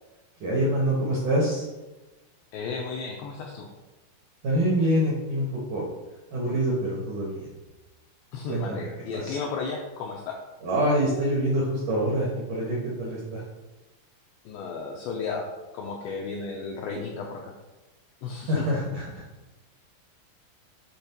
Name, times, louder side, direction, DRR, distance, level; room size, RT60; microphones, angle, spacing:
voice 1, 0.4-1.6 4.4-5.8 6.3-7.5 8.5-8.9 9.1-9.4 10.6-13.4 18.5-19.2, right 1 dB, 75° right, -5 dB, 1.8 m, -25 dB
voice 2, 2.5-3.7 8.3-10.4 14.5-17.5 18.2-18.6, left 4 dB, 90° left, 0 dB, 2.5 m, -34 dB
8.4 x 3.5 x 5.8 m, 1.1 s
omnidirectional pair, 5.9 m